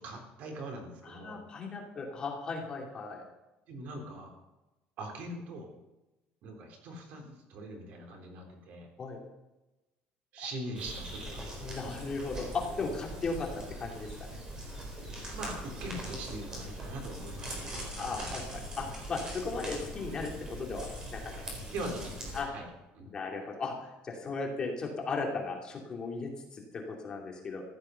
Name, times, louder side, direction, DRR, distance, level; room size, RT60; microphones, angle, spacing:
voice 1, 0.0-1.4 3.7-4.4 5.0-5.7 6.4-8.9 10.3-11.4 15.3-18.3 21.6-22.7 22.9-23.1, right 1 dB, 55° right, 2 dB, 3.7 m, -42 dB
voice 2, 1.0-3.2 9.0-9.2 11.6-14.3 18.0-18.4 18.8-21.5 22.3-22.5 23.0-27.6, left 4 dB, 25° left, 0 dB, 2.7 m, -36 dB
sound 1, 10.7-22.4, right 1 dB, 20° right, 4.2 m, -41 dB
15.0 x 11.0 x 5.7 m, 1.0 s
cardioid pair, 175°, 3 cm